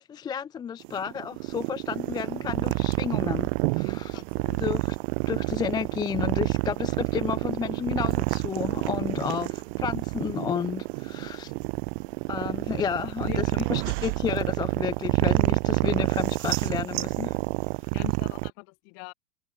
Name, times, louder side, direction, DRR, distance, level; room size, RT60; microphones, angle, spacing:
voice 1, 0.0-4.2 4.6-5.0 5.3-11.5 12.3-17.4, left 7 dB, 10° left, 0.6 m, -32 dB
sound 1, 0.8-18.5, right 29 dB, 45° right, 4.2 m, -28 dB
voice 2, 4.1-4.6 13.0-13.7 17.9-19.1, left 40 dB or more, 40° left, 7.2 m, -43 dB
supercardioid pair, 150°, 46 cm